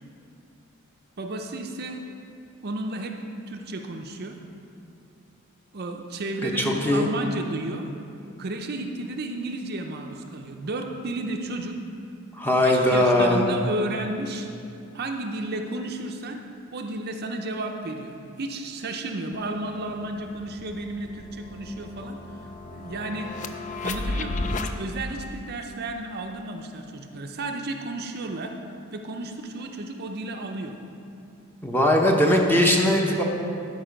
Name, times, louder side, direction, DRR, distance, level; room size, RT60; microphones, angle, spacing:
voice 1, 1.2-2.0 2.6-3.2 3.5-4.4 5.7-7.9 8.4-11.8 12.6-14.5 14.9-16.4 16.7-22.4 22.7-23.3 23.8-28.6 28.9-30.8, right 2 dB, 45° right, 3 dB, 0.6 m, -32 dB
voice 2, 6.4-7.1 12.3-13.5 31.6-33.2, left 1 dB, 10° left, 0 dB, 0.9 m, -20 dB
sound 1, 19.3-19.4 19.7-24.7, left 2 dB, 35° left, 0.4 m, -34 dB
13.0 x 5.4 x 5.2 m, 2.6 s
head